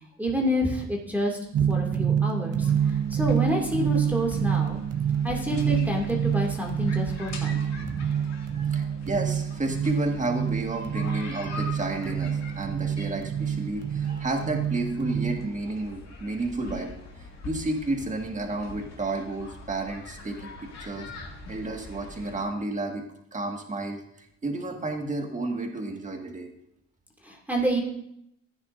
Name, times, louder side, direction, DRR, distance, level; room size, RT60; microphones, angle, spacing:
voice 1, 0.2-1.4 1.7-4.8 5.2-8.1 21.0-21.1 27.2-27.8, equal, 5° right, -1 dB, 2.3 m, -28 dB
sound 1, 1.5-15.5, right 8 dB, 55° right, 0.7 m, -27 dB
sound 2, 2.6-22.4, left 3 dB, 60° left, 2.1 m, -43 dB
voice 2, 8.5-16.9 17.4-20.5 20.8-21.1 21.5-23.0 23.3-26.5, right 2 dB, 25° right, 2 dB, 1.8 m, -31 dB
14.5 x 9.7 x 2.6 m, 0.76 s
cardioid pair, 90°, 30 cm